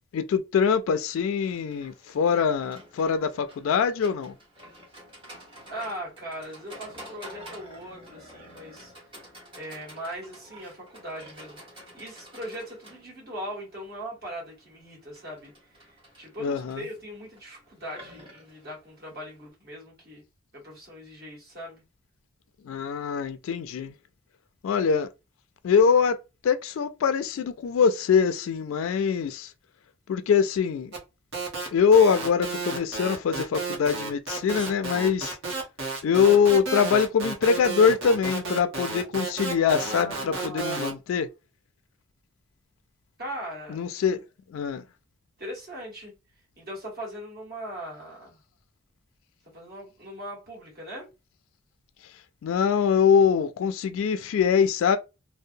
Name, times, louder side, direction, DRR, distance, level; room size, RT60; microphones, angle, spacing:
voice 1, 0.1-4.3 16.4-16.8 22.6-23.9 24.6-25.1 25.6-26.2 26.4-29.5 30.1-30.9 31.7-35.4 36.0-41.3 43.7-44.2 44.5-44.8 52.4-55.0, left 6 dB, 80° left, 0.3 m, -23 dB
Livestock farm animals working animals, 1.4-19.5, equal, 25° right, 1.0 m, -49 dB
voice 2, 5.7-8.9 9.5-15.5 15.8-20.2 20.5-21.8 39.7-40.8 43.2-43.8 45.4-46.1 46.6-48.4 49.5-51.1, equal, 50° right, 1.6 m, -39 dB
sound 1, 30.9-31.0 31.3-40.9, right 3 dB, 70° right, 0.9 m, -32 dB
2.7 x 2.0 x 2.5 m
head